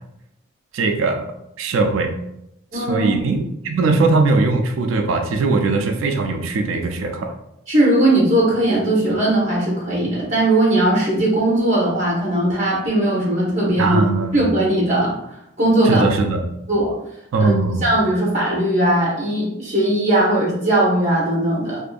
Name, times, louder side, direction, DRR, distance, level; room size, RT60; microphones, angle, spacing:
voice 1, 0.7-1.2 1.6-2.1 2.7-7.3 13.8-14.4 15.8-16.4 17.3-17.8, right 3 dB, 75° right, 5 dB, 0.3 m, -20 dB
voice 2, 2.7-3.1 7.7-14.0 14.3-15.2 15.6-16.1 16.7-16.9 17.4-17.5 17.8-21.8, right 1 dB, 35° right, -5 dB, 0.8 m, -18 dB
2.6 x 2.5 x 2.3 m, 0.82 s
head